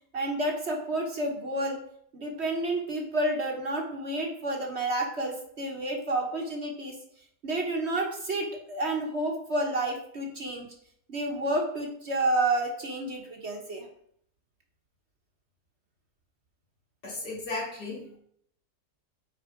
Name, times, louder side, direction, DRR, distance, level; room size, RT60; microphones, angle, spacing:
voice 1, 0.1-1.8 2.1-6.9 7.4-10.7 11.1-13.9, right 2 dB, 45° right, 1 dB, 1.4 m, -30 dB
voice 2, 17.0-18.2, left 3 dB, 70° left, -3 dB, 3.1 m, -35 dB
9.0 x 4.2 x 4.9 m, 0.67 s
omnidirectional pair, 1.7 m